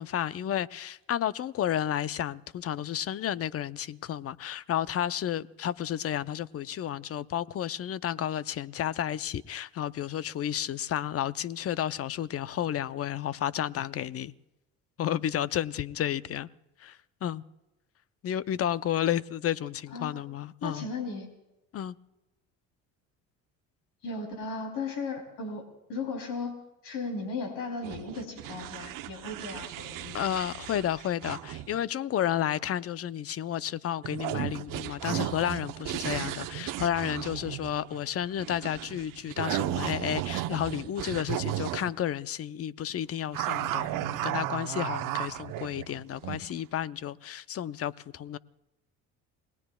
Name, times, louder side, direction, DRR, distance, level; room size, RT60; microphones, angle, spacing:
voice 1, 0.0-14.3 15.0-16.5 16.8-17.4 18.2-20.9 21.7-22.0 30.1-48.4, left 10 dB, 45° left, 0.7 m, -32 dB
voice 2, 19.9-20.2 20.6-21.3 24.0-25.6 25.9-26.6 26.8-30.2, left 3 dB, 65° left, 3.3 m, -36 dB
sound 1, 27.8-31.8 34.0-41.9 43.3-46.5, right 14 dB, 65° right, 0.9 m, -35 dB
29.0 x 19.5 x 2.3 m
supercardioid pair, 75°, 34 cm